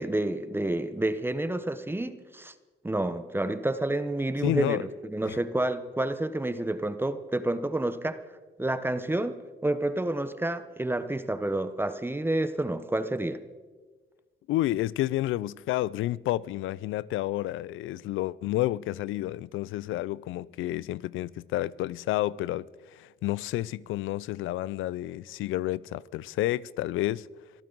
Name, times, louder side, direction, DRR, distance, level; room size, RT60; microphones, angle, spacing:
voice 1, 0.0-2.5 2.8-8.2 8.6-9.4 9.6-13.4, right 1 dB, 10° right, 0.9 m, -29 dB
voice 2, 4.4-4.8 14.5-27.3, left 15 dB, 85° left, 0.4 m, -30 dB
24.5 x 14.0 x 4.0 m
cardioid pair, 90°, 20 cm